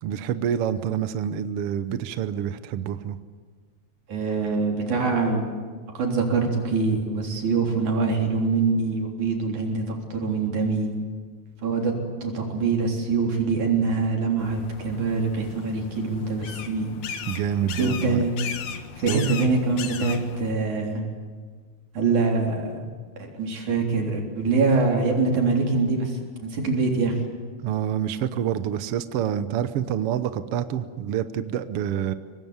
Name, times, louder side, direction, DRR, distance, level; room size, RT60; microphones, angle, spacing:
voice 1, 0.0-3.2 17.3-18.3 19.1-19.3 27.6-32.1, right 9 dB, 65° right, 11 dB, 1.6 m, -27 dB
voice 2, 4.1-5.6 5.9-10.9 11.6-11.9 12.2-16.9 17.8-18.3 19.0-21.0 21.9-22.8 23.2-27.1, right 4 dB, 90° right, 1 dB, 5.1 m, -24 dB
sound 1, 14.4-20.5, left 7 dB, 90° left, 2.9 m, -37 dB
24.0 x 19.5 x 9.6 m, 1.5 s
omnidirectional pair, 3.3 m